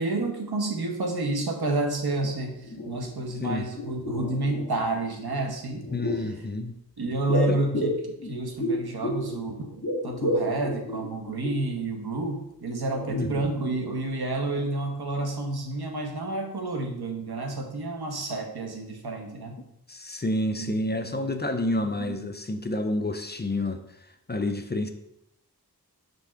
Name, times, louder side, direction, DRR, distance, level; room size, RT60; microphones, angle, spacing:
voice 1, 0.0-5.8 7.0-19.6 20.6-21.7 22.0-22.3, right 2 dB, 80° right, 2 dB, 1.2 m, -30 dB
sound 1, 2.2-2.3 2.6-3.4 3.7-4.9 5.7-6.4 7.3-9.4 9.6-11.7 12.2-12.3 12.7-13.7 14.0-14.1, left 1 dB, 55° left, 1.7 m, -31 dB
voice 2, 5.9-6.8 7.5-7.6 8.2-8.4 13.1-13.4 19.6-23.8 24.3-24.9, left 1 dB, 25° left, 7 dB, 0.6 m, -29 dB
5.3 x 3.6 x 5.7 m, 0.79 s
wide cardioid pair, 55°, 38 cm